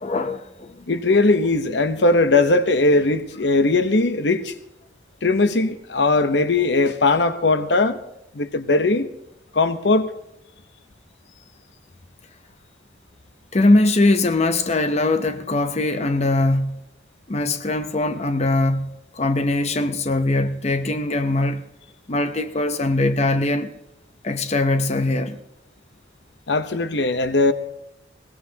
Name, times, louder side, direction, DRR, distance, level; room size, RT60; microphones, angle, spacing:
voice 1, 0.0-0.9 13.5-16.8 17.3-21.6 22.1-23.7 24.2-25.4, left 2 dB, 35° left, 0.7 m, -21 dB
voice 2, 0.9-4.5 5.2-8.0 8.3-9.1 9.5-10.1 26.5-27.5, left 2 dB, 70° left, 0.9 m, -19 dB
21.5 x 18.5 x 2.9 m
head